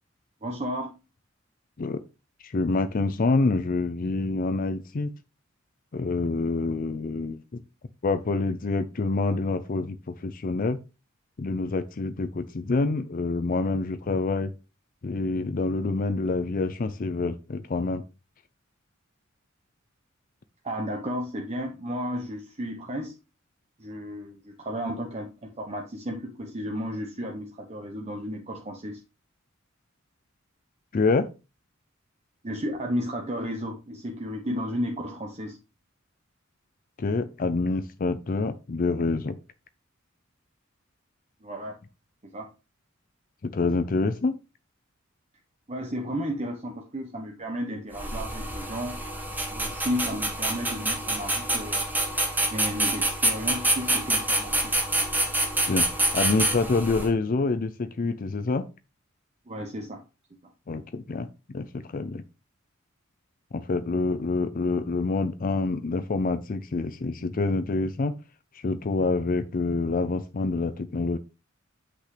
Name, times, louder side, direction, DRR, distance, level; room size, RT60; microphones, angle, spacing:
voice 1, 0.4-0.9 20.6-23.2 23.8-29.0 32.4-35.6 41.4-41.8 42.3-42.5 45.7-49.0 49.5-51.8 52.5-54.5 59.5-60.0, equal, 35° right, 0.9 m, -33 dB
voice 2, 2.4-5.1 5.9-7.6 8.0-10.8 11.4-14.5 15.0-18.0 30.9-31.3 37.0-39.4 43.4-44.4 55.7-58.6 60.7-62.2 63.5-68.2 68.5-71.2, left 3 dB, 45° left, 0.5 m, -27 dB
sound 1, 47.9-57.1, right 1 dB, 10° right, 1.4 m, -27 dB
8.0 x 6.0 x 3.2 m
head